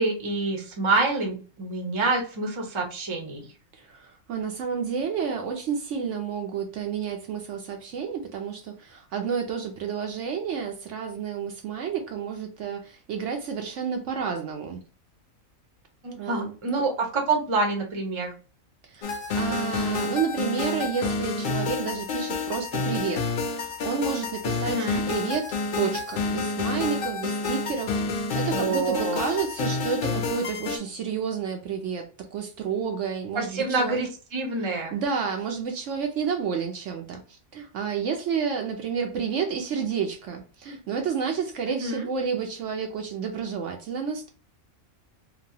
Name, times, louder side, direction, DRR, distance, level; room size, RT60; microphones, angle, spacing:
voice 1, 0.0-3.4 16.0-18.3 24.6-25.0 28.5-29.2 33.3-34.9 41.7-42.1, right 3 dB, 30° right, 0.6 m, -27 dB
voice 2, 3.7-14.8 16.1-16.8 18.9-23.2 23.5-34.0 34.9-44.3, right 6 dB, 65° right, 0.8 m, -30 dB
sound 1, 19.0-30.8, left 3 dB, 60° left, 0.6 m, -29 dB
2.9 x 2.2 x 2.7 m
omnidirectional pair, 1.4 m